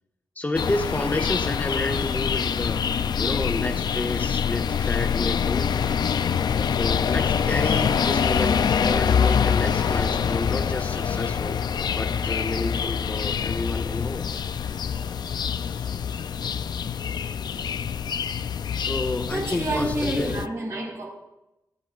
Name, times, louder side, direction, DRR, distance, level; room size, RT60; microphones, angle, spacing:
voice 1, 0.4-2.8 3.2-5.9 6.7-11.6 11.9-14.3 15.5-15.9 18.8-20.4, left 2 dB, 20° left, 1.6 m, -30 dB
sound 1, 0.5-20.5, left 7 dB, 70° left, 0.5 m, -25 dB
voice 2, 19.2-21.0, right 2 dB, 40° right, 4.8 m, -29 dB
29.5 x 11.0 x 2.5 m
wide cardioid pair, 145°, 7 cm